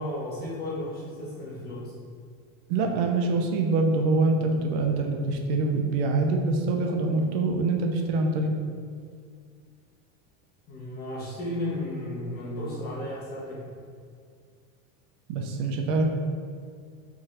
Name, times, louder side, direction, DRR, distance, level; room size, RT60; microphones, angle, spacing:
voice 1, 0.0-1.9 10.7-13.7, left 1 dB, 25° left, -6 dB, 1.4 m, -34 dB
voice 2, 2.7-8.5 15.3-16.0, right 3 dB, 55° right, 3 dB, 0.7 m, -25 dB
5.2 x 4.0 x 4.8 m, 2.1 s
cardioid pair, 180°, 40 cm